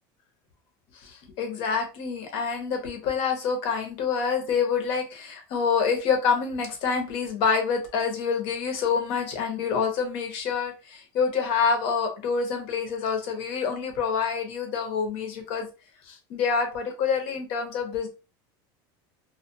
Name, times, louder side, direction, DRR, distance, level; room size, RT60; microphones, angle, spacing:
voice 1, 1.0-15.7 16.1-18.1, left 6 dB, 55° left, 4 dB, 0.8 m, -27 dB
2.3 x 2.2 x 2.6 m, 0.30 s
cardioid pair, 150°, 11 cm